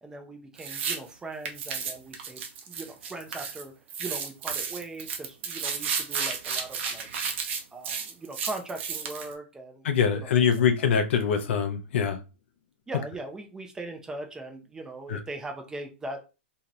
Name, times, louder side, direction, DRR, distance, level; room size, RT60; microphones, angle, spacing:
voice 1, 0.0-3.7 4.0-7.1 7.7-10.5 12.9-16.2, right 2 dB, 10° right, 0.5 m, -40 dB
sound 1, 0.6-1.0 1.4-3.6 3.9-9.3, right 6 dB, 70° right, 0.7 m, -32 dB
voice 2, 9.8-12.2 15.1-15.2, left 7 dB, 70° left, 0.5 m, -24 dB
2.7 x 2.4 x 3.0 m
hypercardioid pair, 150°, 7 cm